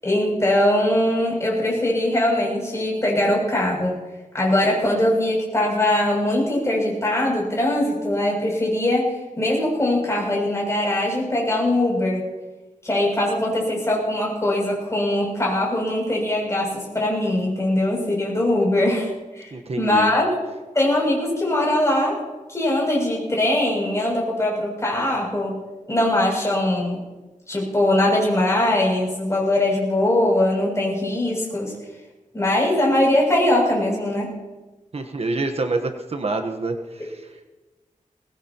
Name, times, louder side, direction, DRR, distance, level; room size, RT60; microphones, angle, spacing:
voice 1, 0.0-4.0 4.3-12.3 12.8-19.1 19.4-19.5 19.8-20.3 20.7-22.2 22.5-25.6 25.9-27.0 27.5-31.7 32.3-34.3, left 1 dB, 20° left, -3 dB, 7.2 m, -21 dB
voice 2, 19.5-20.1 34.9-37.4, right 3 dB, 50° right, 5 dB, 1.1 m, -27 dB
21.5 x 20.0 x 3.0 m, 1.1 s
wide cardioid pair, 130°, 13 cm